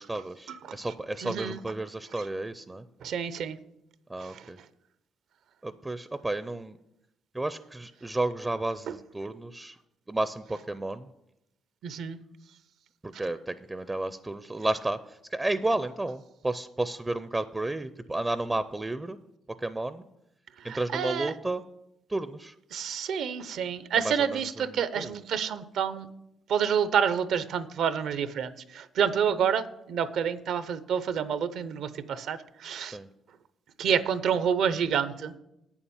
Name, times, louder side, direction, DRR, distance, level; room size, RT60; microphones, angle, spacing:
voice 1, 0.0-2.8 4.1-4.6 5.6-6.8 7.3-9.8 10.1-11.1 13.0-19.2 19.6-20.0 20.6-21.6 22.1-22.5 23.9-25.2 32.8-33.1, right 2 dB, 15° right, 13 dB, 0.4 m, -32 dB
voice 2, 1.2-1.6 3.0-3.6 4.2-4.4 11.8-12.2 20.7-21.3 22.7-26.1 26.5-33.0 33.8-35.3, right 7 dB, 75° right, 14 dB, 0.7 m, -28 dB
8.6 x 7.2 x 7.0 m, 0.86 s
cardioid pair, 90°, 0 cm